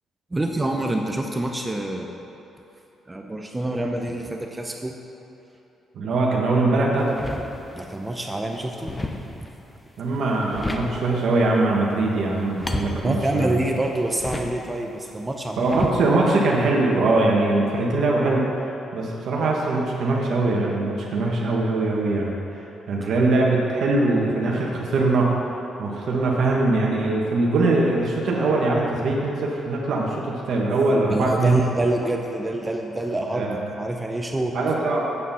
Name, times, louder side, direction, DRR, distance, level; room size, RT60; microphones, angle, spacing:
voice 1, 0.3-2.1 3.1-4.9 7.8-8.9 13.0-15.9 31.1-34.6, right 1 dB, 15° right, 2 dB, 0.7 m, -26 dB
voice 2, 5.9-7.1 10.0-13.5 15.6-25.3 25.8-31.6 33.3-33.7 34.5-35.0, right 2 dB, 65° right, -2 dB, 1.4 m, -22 dB
sound 1, 7.0-7.9 8.3-9.6 10.2-11.2 12.3-14.8 15.6-16.4, left 1 dB, 15° left, 0.8 m, -32 dB
8.5 x 6.9 x 5.6 m, 2.9 s
cardioid pair, 90°, 0 cm